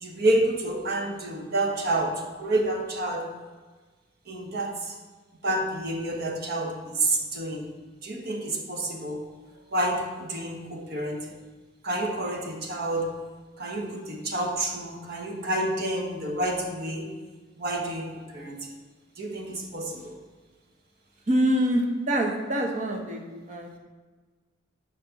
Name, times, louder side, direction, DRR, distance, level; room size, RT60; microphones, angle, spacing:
voice 1, 0.0-3.3 4.3-4.9 5.4-7.7 8.0-9.2 9.7-11.4 11.8-13.1 13.6-17.1 17.6-18.7 19.2-20.2, right 1 dB, 50° right, 1 dB, 1.2 m, -29 dB
voice 2, 21.3-23.8, equal, 35° right, 1 dB, 1.0 m, -25 dB
7.3 x 5.3 x 5.2 m, 1.4 s
head